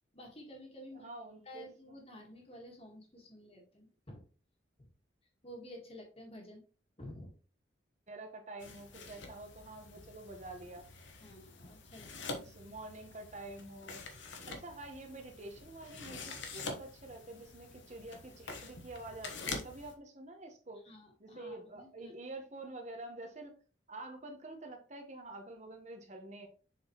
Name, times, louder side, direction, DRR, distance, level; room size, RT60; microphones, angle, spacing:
voice 1, 0.1-1.1 1.5-4.3 4.8-4.9 5.4-6.6 7.0-7.3 11.2-12.5 20.8-22.1, equal, 30° left, 1 dB, 1.8 m, -51 dB
voice 2, 0.9-2.0 8.1-10.9 12.3-14.1 14.5-20.8 21.2-23.5 23.9-26.5, right 2 dB, 35° right, 4 dB, 1.2 m, -47 dB
sound 1, 8.6-19.9, left 3 dB, 75° left, 1.2 m, -46 dB
7.0 x 4.8 x 3.1 m, 0.38 s
head